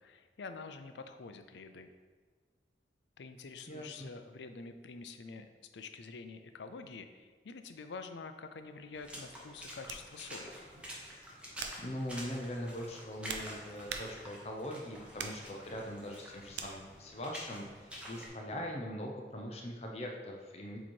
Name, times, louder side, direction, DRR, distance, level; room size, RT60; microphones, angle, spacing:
voice 1, 0.0-1.9 3.2-5.5 5.7-10.5, left 4 dB, 85° left, 8 dB, 0.5 m, -47 dB
voice 2, 3.7-4.1 11.8-20.8, equal, 35° left, 0 dB, 0.6 m, -41 dB
sound 1, 8.5-8.7 9.9-10.1 10.8-11.0 11.6-11.9 12.8-14.5 15.2-15.5 16.5-16.7, right 6 dB, 75° right, 0.5 m, -43 dB
Water / Splash splatter, 8.9-18.3, equal, 5° right, 0.8 m, -48 dB
7.1 x 3.0 x 4.4 m, 1.5 s
head